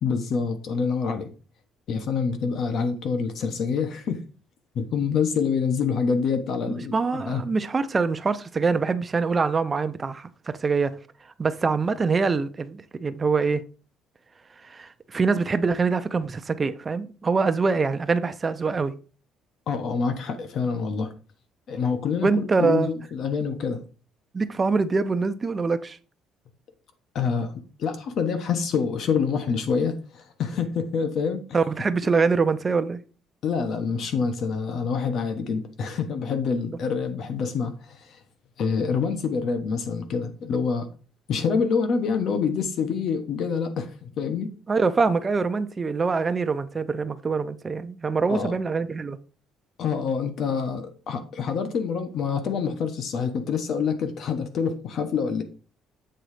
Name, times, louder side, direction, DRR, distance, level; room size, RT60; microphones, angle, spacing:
voice 1, 0.0-1.3 1.9-4.2 4.7-7.4 19.7-21.1 21.7-23.8 27.1-27.5 27.8-31.4 33.4-38.2 38.6-40.9 41.3-44.5 48.3-48.6 49.8-55.4, left 5 dB, 55° left, 1.1 m, -26 dB
voice 2, 6.7-10.9 11.4-13.7 14.6-18.9 22.2-22.9 24.3-26.0 31.5-33.0 44.7-49.2, right 4 dB, 25° right, 0.6 m, -24 dB
7.8 x 3.9 x 4.9 m
cardioid pair, 145°, 0 cm